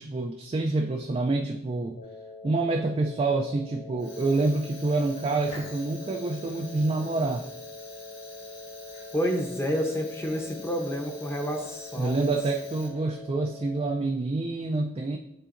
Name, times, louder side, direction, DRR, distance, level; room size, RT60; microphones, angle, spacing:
voice 1, 0.0-2.0 2.4-7.5 12.0-15.2, right 3 dB, 30° right, 3 dB, 0.3 m, -27 dB
sound 1, 2.0-14.0, left 2 dB, 80° left, 0.5 m, -44 dB
Fire, 3.9-13.3, left 3 dB, 55° left, 2.0 m, -48 dB
voice 2, 9.1-12.3, equal, 15° left, 2 dB, 0.7 m, -29 dB
10.0 x 3.8 x 2.5 m, 0.81 s
head